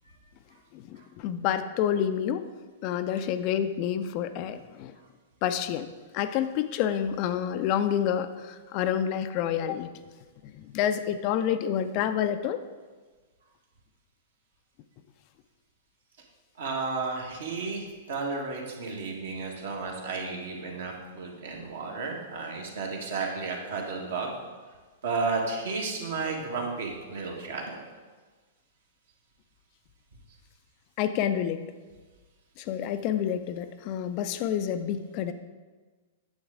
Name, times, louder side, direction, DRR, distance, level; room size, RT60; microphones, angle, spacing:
voice 1, 0.7-2.4 2.8-4.9 5.4-5.9 6.1-9.9 10.6-12.6 31.0-31.6 32.6-35.3, left 9 dB, 40° left, 10 dB, 0.4 m, -28 dB
voice 2, 16.6-24.3 25.0-27.8, right 4 dB, 60° right, 0 dB, 1.6 m, -33 dB
9.7 x 7.1 x 3.7 m, 1.4 s
figure-of-eight pair, 105°, 0 cm